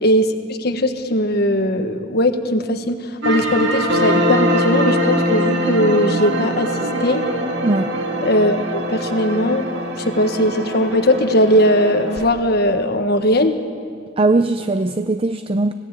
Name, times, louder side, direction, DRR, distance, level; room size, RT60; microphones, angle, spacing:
voice 1, 0.0-6.7 7.0-7.3 8.2-9.7 10.0-13.6, equal, 55° left, 8 dB, 1.4 m, -19 dB
sound 1, 3.2-12.3, equal, 65° right, 2.8 m, -22 dB
voice 2, 7.6-7.9 14.2-15.7, right 2 dB, 30° right, 10 dB, 0.5 m, -19 dB
26.5 x 17.5 x 8.2 m, 2.2 s
head